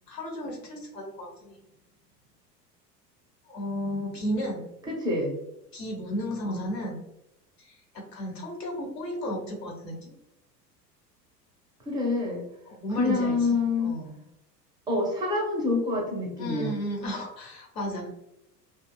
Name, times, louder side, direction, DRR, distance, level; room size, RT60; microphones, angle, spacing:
voice 1, 0.1-1.6 3.5-4.6 5.7-7.0 7.6-7.8 8.1-10.1 12.7-14.2 16.4-18.1, equal, 80° left, 0 dB, 1.0 m, -33 dB
voice 2, 4.8-5.4 6.5-6.6 11.9-12.5 13.0-14.0 14.9-16.8, left 3 dB, 10° right, -2 dB, 0.4 m, -27 dB
2.7 x 2.2 x 2.3 m, 0.83 s
figure-of-eight pair, 80°, 49 cm